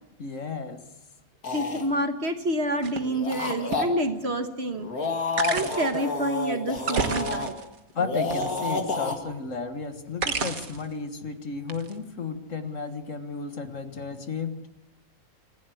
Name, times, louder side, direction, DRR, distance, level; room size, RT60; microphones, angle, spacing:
voice 1, 0.2-0.8 8.0-14.6, left 4 dB, 60° left, 8 dB, 1.9 m, -33 dB
sound 1, 1.4-1.8 3.0-3.8 4.7-7.5 8.0-9.2, left 3 dB, 90° left, 2.7 m, -29 dB
voice 2, 1.5-4.9 5.5-7.6, right 1 dB, 45° right, 7 dB, 1.8 m, -28 dB
sound 2, 2.8-3.0 3.7-3.8 5.4-6.0 6.8-7.8 8.3-8.9 10.2-10.9 11.7-11.9, right 5 dB, 75° right, 1.9 m, -29 dB
25.5 x 16.0 x 7.9 m, 0.92 s
omnidirectional pair, 1.5 m